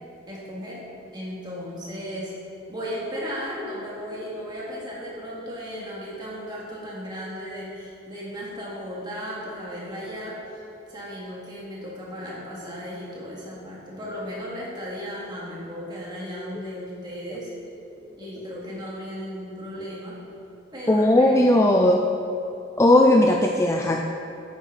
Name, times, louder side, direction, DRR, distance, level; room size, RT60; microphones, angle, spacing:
voice 1, 0.3-0.9 1.1-2.4 2.7-10.6 10.9-17.5 18.2-20.2 20.7-21.7, equal, 20° right, -5 dB, 2.1 m, -35 dB
voice 2, 20.9-22.1 22.8-24.1, left 1 dB, 15° left, 2 dB, 0.3 m, -17 dB
9.3 x 9.1 x 4.0 m, 3.0 s
head